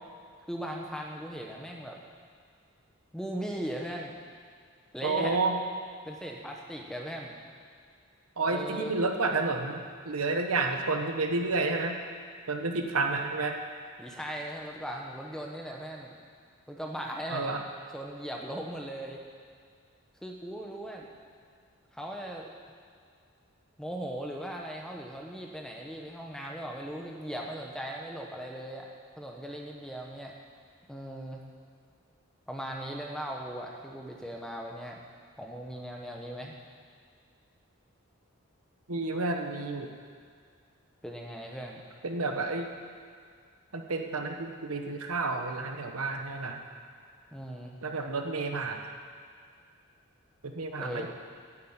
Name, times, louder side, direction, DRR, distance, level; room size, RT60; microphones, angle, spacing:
voice 1, 0.5-2.0 3.1-4.2 4.9-5.4 6.0-7.4 8.4-8.9 14.0-16.2 16.7-17.5 17.9-19.2 20.2-21.0 21.9-22.5 23.8-28.9 29.2-30.3 30.9-31.4 32.5-35.0 35.4-36.5 41.0-41.8 47.3-47.8 50.8-51.1, right 1 dB, 5° left, 0 dB, 1.1 m, -38 dB
voice 2, 5.0-5.6 8.4-12.0 12.5-13.5 17.3-17.6 38.9-39.9 42.0-42.7 43.7-46.6 47.8-48.9 50.4-51.1, right 3 dB, 85° right, 4 dB, 1.2 m, -30 dB
9.9 x 8.5 x 8.7 m, 2.1 s
head